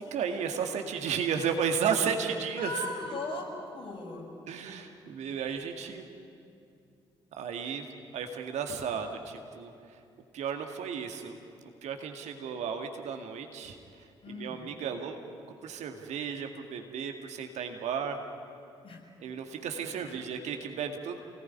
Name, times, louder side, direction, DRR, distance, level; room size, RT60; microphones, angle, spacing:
voice 1, 0.0-2.7 4.5-6.0 7.3-7.9 8.1-9.7 10.3-11.4 11.6-15.2 15.6-18.2 19.2-21.2, right 7 dB, 60° right, 5 dB, 2.1 m, -34 dB
voice 2, 2.6-4.2 14.2-14.7 18.8-19.0 19.8-20.2, left 2 dB, 40° left, -1 dB, 6.3 m, -38 dB
27.5 x 19.0 x 9.7 m, 2.5 s
figure-of-eight pair, 40°, 13 cm